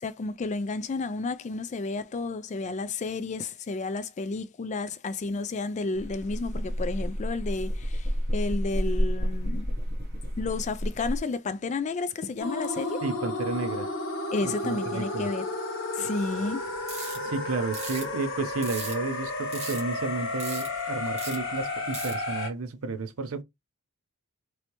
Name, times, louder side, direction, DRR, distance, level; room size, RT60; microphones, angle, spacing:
voice 1, 0.0-9.7 10.4-13.0 14.3-15.5 15.9-16.7, left 3 dB, 30° left, 0.3 m, -31 dB
sound 1, 5.9-11.2, equal, 45° right, 0.9 m, -30 dB
sound 2, 12.4-22.5, left 2 dB, 60° left, 1.0 m, -32 dB
voice 2, 13.0-13.9 14.4-15.3 17.1-23.4, right 4 dB, 65° right, 0.6 m, -32 dB
sound 3, 16.7-17.4 17.7-19.1 19.5-20.1 20.4-20.8 21.0-21.6 21.9-22.3, right 3 dB, 30° right, 1.2 m, -38 dB
3.2 x 2.7 x 2.9 m
head